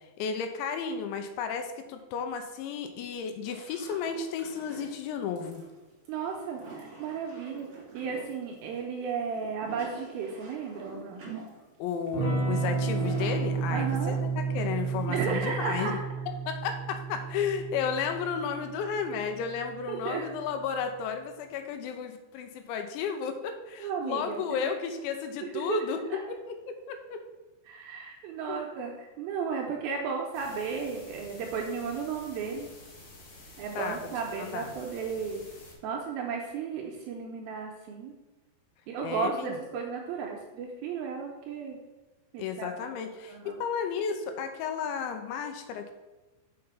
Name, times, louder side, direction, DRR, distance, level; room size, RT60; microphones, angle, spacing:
voice 1, 0.2-5.6 11.8-16.0 16.5-27.2 28.5-28.7 33.8-34.0 34.4-34.7 39.0-39.6 42.4-45.9, left 6 dB, 90° left, 6 dB, 3.0 m, -33 dB
sound 1, 3.4-15.6, right 4 dB, 40° right, 2.2 m, -47 dB
voice 2, 6.1-7.7 7.9-11.3 13.7-14.2 15.0-16.0 19.9-20.3 23.8-24.4 24.9-25.0 25.5-25.8 26.1-26.2 27.7-32.7 33.6-35.4 35.8-38.1 38.9-41.8 42.3-43.6, right 5 dB, 85° right, 0 dB, 2.2 m, -34 dB
Electric guitar / Strum, 12.1-20.4, right 4 dB, 45° left, 2.4 m, -32 dB
sound 2, 30.3-35.7, left 1 dB, 70° left, 1.3 m, -50 dB
6.7 x 5.3 x 5.5 m, 1.1 s
omnidirectional pair, 5.2 m